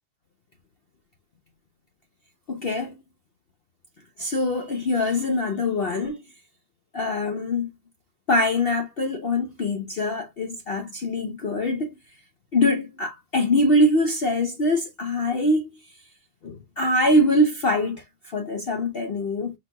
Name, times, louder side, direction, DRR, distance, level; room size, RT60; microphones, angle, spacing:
voice 1, 2.5-2.9 4.2-6.2 6.9-7.7 8.3-11.9 12.5-15.8 16.4-19.5, left 1 dB, 70° left, 0.5 m, -23 dB
5.3 x 4.1 x 2.2 m
omnidirectional pair, 1.9 m